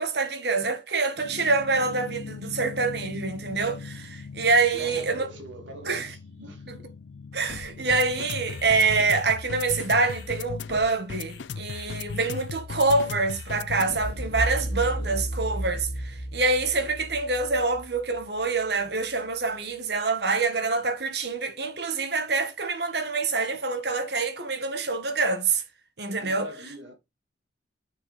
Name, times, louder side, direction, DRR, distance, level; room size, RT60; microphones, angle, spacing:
voice 1, 0.0-5.3 5.9-6.1 6.4-6.8 7.3-25.6 26.0-26.5, right 3 dB, 60° right, 1.3 m, -26 dB
sound 1, 1.2-14.2, left 5 dB, 80° left, 0.5 m, -38 dB
voice 2, 4.7-6.8 15.0-15.3 26.2-26.9, right 1 dB, 85° right, 2.4 m, -43 dB
sound 2, 14.0-18.8, right 1 dB, 60° left, 1.7 m, -33 dB
6.5 x 4.8 x 4.1 m
head